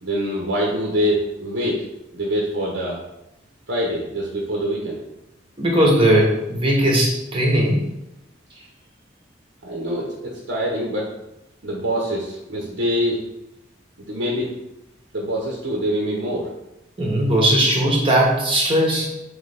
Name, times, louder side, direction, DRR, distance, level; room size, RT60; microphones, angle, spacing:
voice 1, 0.0-1.8 2.1-3.0 3.7-5.0 9.6-11.1 11.6-13.2 14.1-14.5 15.1-16.5, equal, 80° right, -3 dB, 0.8 m, -24 dB
voice 2, 5.6-7.9 17.0-19.1, right 1 dB, 30° right, -2 dB, 0.7 m, -18 dB
3.8 x 3.1 x 3.3 m, 0.89 s
head